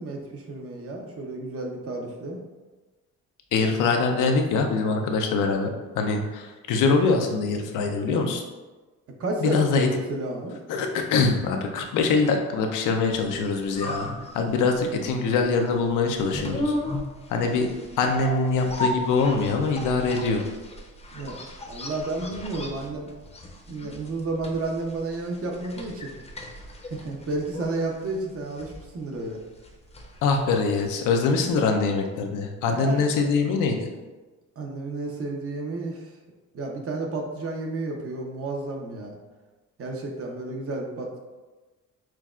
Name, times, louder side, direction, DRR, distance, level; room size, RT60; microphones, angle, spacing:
voice 1, 0.0-2.4 9.2-10.6 17.4-17.6 21.1-23.1 23.7-26.1 26.9-29.4 32.7-33.1 34.6-36.1 36.5-39.2 39.8-41.2, right 2 dB, 50° right, 1 dB, 0.8 m, -31 dB
voice 2, 3.5-5.7 6.0-8.4 9.4-9.9 10.7-16.8 17.3-17.7 18.0-20.4 30.2-33.9, left 4 dB, 85° left, 3 dB, 0.6 m, -23 dB
sound 1, 13.4-31.2 31.5-31.6, left 1 dB, 20° left, 0.6 m, -36 dB
5.8 x 2.3 x 2.4 m, 1.2 s
cardioid pair, 90°, 30 cm